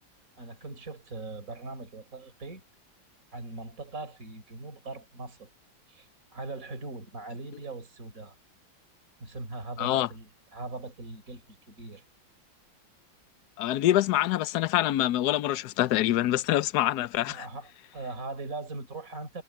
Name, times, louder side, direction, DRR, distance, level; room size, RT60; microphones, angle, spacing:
voice 1, 0.4-2.6 3.3-5.5 5.9-8.3 9.2-12.0 17.3-19.4, right 3 dB, 40° right, 4.5 m, -40 dB
voice 2, 9.8-10.1 13.6-17.5, left 14 dB, 65° left, 1.1 m, -25 dB
omnidirectional pair, 2.1 m